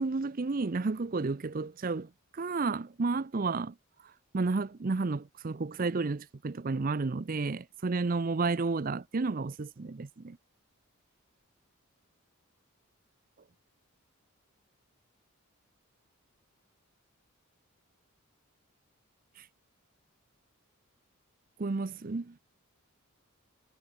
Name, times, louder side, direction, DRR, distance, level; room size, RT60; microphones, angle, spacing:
voice 1, 0.0-3.7 4.0-10.4 19.4-19.5 21.6-22.3, right 3 dB, 40° right, 0.5 m, -32 dB
head